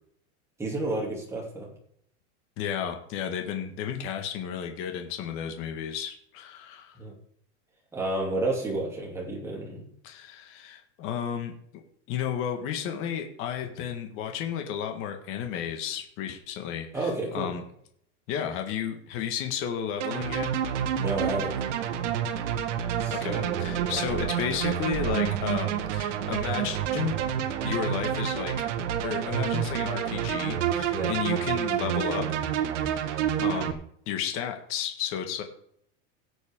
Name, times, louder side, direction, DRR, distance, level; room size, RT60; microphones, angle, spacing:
voice 1, 0.6-1.7 6.9-7.1 7.9-9.9 16.9-17.5 21.0-21.6 23.0-24.1 30.9-31.1, right 2 dB, 5° right, -3 dB, 2.8 m, -31 dB
voice 2, 2.6-6.9 10.0-11.5 12.1-17.6 18.3-20.5 22.8-27.2 27.6-28.5 29.0-32.2 32.9-33.8 34.1-35.4, left 8 dB, 35° left, 5 dB, 1.6 m, -33 dB
sound 1, 20.0-33.7, right 9 dB, 75° right, 1.5 m, -28 dB
17.5 x 8.0 x 3.7 m, 0.68 s
supercardioid pair, 165°, 36 cm